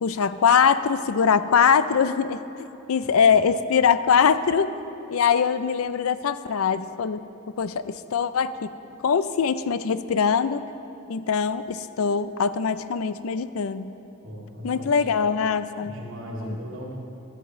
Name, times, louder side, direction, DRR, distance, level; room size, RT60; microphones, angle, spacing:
voice 1, 0.0-2.4 2.9-4.7 5.1-7.2 7.6-8.7 9.0-10.6 11.1-13.9 14.6-15.9 16.4-16.6, left 6 dB, 90° left, 13 dB, 0.5 m, -22 dB
voice 2, 14.2-15.1 15.8-16.9, equal, 65° right, -4 dB, 2.6 m, -37 dB
16.5 x 12.0 x 3.1 m, 2.8 s
head